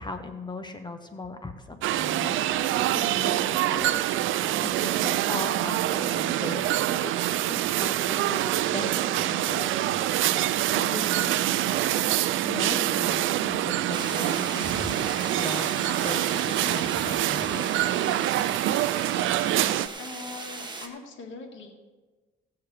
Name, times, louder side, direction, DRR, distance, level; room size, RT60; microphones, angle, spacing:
voice 1, 0.0-3.9 4.6-7.1 7.5-9.8 10.7-11.7 12.4-17.7, left 2 dB, 20° left, 7 dB, 1.1 m, -38 dB
sound 1, 1.8-19.9, right 13 dB, 85° right, 0.5 m, -25 dB
sound 2, 13.9-20.9, right 3 dB, 20° right, 1.5 m, -38 dB
voice 2, 19.9-21.7, left 4 dB, 70° left, 2 dB, 2.1 m, -41 dB
17.5 x 7.2 x 4.9 m, 1.3 s
cardioid pair, 90°, 20 cm